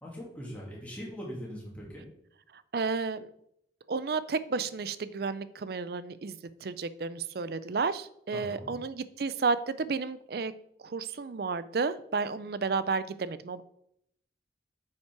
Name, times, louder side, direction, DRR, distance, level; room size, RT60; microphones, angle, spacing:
voice 1, 0.0-2.0 8.3-8.8, equal, 10° left, -4 dB, 2.5 m, -41 dB
voice 2, 2.7-3.3 3.9-10.5 10.8-13.6, right 4 dB, 55° right, 15 dB, 0.4 m, -32 dB
9.0 x 5.7 x 4.6 m, 0.75 s
head